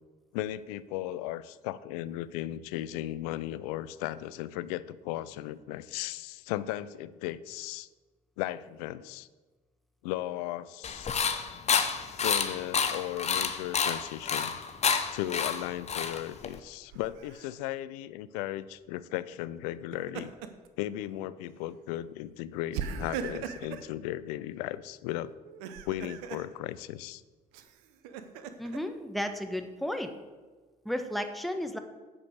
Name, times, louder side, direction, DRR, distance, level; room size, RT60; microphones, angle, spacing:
voice 1, 0.3-7.9 8.4-9.3 10.0-11.1 12.2-14.5 15.1-20.3 20.8-25.3 25.9-27.2, left 14 dB, 75° left, 16 dB, 0.5 m, -36 dB
sound 1, 10.8-16.6, left 6 dB, 35° left, 0.9 m, -29 dB
Laughter, 16.9-17.5 19.7-20.7 21.1-21.3 22.7-23.9 25.4-26.5 27.5-28.8, right 7 dB, 75° right, 0.8 m, -39 dB
voice 2, 28.6-30.1 30.8-31.8, left 1 dB, ahead, 6 dB, 1.1 m, -33 dB
9.9 x 5.1 x 6.4 m, 1.3 s
hypercardioid pair, 65°, 20 cm